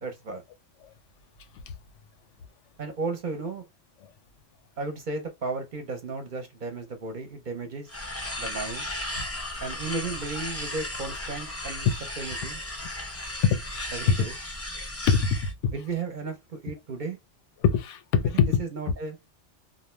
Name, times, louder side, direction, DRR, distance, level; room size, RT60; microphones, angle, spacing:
voice 1, 0.0-0.4 2.8-3.7 4.8-7.9 8.4-8.9 9.6-11.9 12.2-12.6 13.9-14.3 15.7-17.2 18.3-19.2, right 3 dB, 50° right, 0.7 m, -34 dB
sound 1, 7.9-15.5, left 1 dB, 25° left, 0.3 m, -35 dB
voice 2, 15.1-15.7 17.6-18.6, left 6 dB, 90° left, 0.9 m, -22 dB
2.5 x 2.2 x 3.0 m
omnidirectional pair, 1.2 m